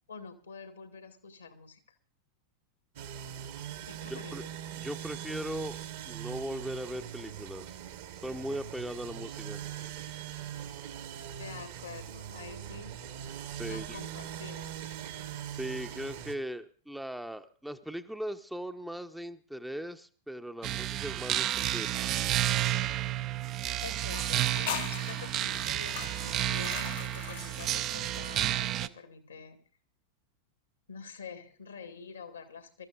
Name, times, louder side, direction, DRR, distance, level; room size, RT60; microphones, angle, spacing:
voice 1, 0.1-2.0 3.8-4.5 11.4-12.9 13.6-14.9 23.8-29.6 30.9-32.9, left 5 dB, 75° left, 7 dB, 1.9 m, -47 dB
sound 1, 3.0-16.4, right 10 dB, 55° right, 1.3 m, -41 dB
voice 2, 4.1-4.4 4.8-7.8 8.1-9.6 13.5-14.1 15.5-22.0, equal, ahead, 7 dB, 0.7 m, -39 dB
sound 2, 20.6-28.9, right 13 dB, 35° right, 0.5 m, -31 dB
sound 3, 24.1-28.6, left 11 dB, 55° left, 0.9 m, -42 dB
23.0 x 13.5 x 2.5 m, 0.41 s
figure-of-eight pair, 90°, 0 cm